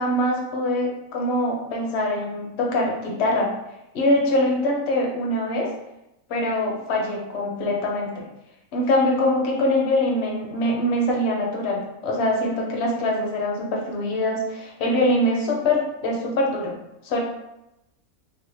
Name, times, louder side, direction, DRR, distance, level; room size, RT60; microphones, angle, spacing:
voice 1, 0.0-3.5 3.9-5.7 6.3-8.3 8.7-16.7 17.0-17.2, left 1 dB, 60° left, 0 dB, 0.7 m, -23 dB
3.4 x 2.1 x 3.0 m, 0.90 s
omnidirectional pair, 1.6 m